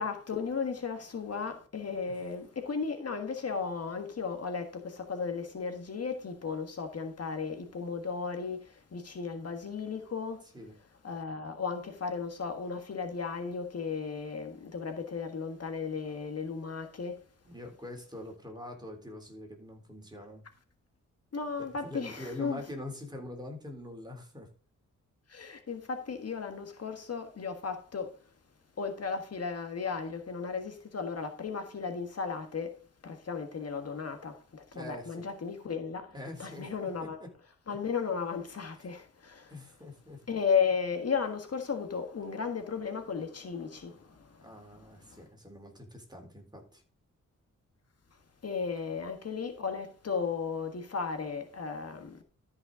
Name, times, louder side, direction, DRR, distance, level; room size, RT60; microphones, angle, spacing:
voice 1, 0.0-10.5 11.0-17.2 21.3-22.6 25.3-28.2 28.8-32.8 33.0-36.1 36.4-37.2 37.7-39.5 40.3-44.5 45.0-45.2 48.4-52.2, left 5 dB, 50° left, 1.6 m, -35 dB
voice 2, 17.4-20.4 21.6-24.5 34.7-35.3 36.1-37.3 39.5-40.2 44.4-46.8, left 1 dB, 15° right, 3.7 m, -44 dB
13.0 x 5.8 x 3.7 m
wide cardioid pair, 100°, 31 cm